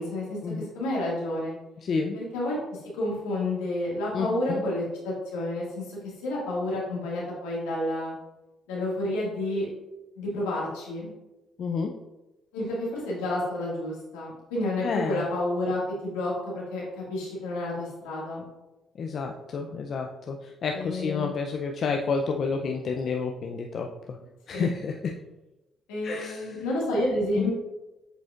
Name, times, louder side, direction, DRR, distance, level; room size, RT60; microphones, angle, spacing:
voice 1, 0.0-1.6 2.1-8.1 8.7-9.7 10.2-11.1 12.5-18.4 20.7-21.3 24.5-24.7 25.9-27.5, left 1 dB, 90° left, -5 dB, 1.9 m, -30 dB
voice 2, 1.8-2.2 4.1-4.6 11.6-11.9 14.8-15.3 19.0-24.2 24.5-25.1 26.0-26.5 27.4-27.5, left 5 dB, 60° left, 2 dB, 0.5 m, -30 dB
7.9 x 4.9 x 2.4 m, 1.0 s
supercardioid pair, 55°, 0 cm